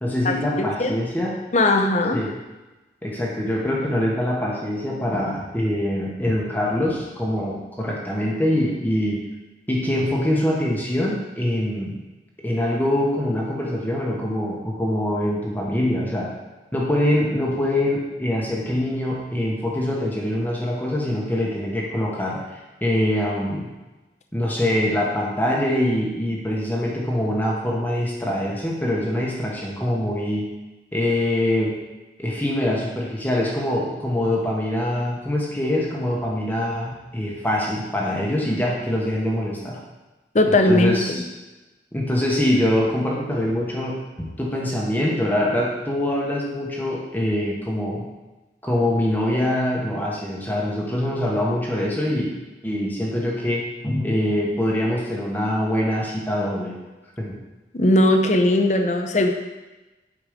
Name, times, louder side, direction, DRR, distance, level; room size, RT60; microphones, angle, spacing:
voice 1, 0.0-1.4 2.1-2.3 3.0-9.3 9.7-12.0 12.4-16.3 16.7-23.7 24.3-30.5 30.9-31.8 32.2-39.8 40.4-41.2 41.9-48.1 48.6-52.4 52.6-56.8 57.2-57.4, left 1 dB, 10° left, -3 dB, 1.1 m, -24 dB
voice 2, 1.5-2.2 40.3-41.2 57.7-59.3, left 1 dB, 40° left, 4 dB, 0.7 m, -18 dB
8.2 x 5.2 x 5.1 m, 1.1 s
head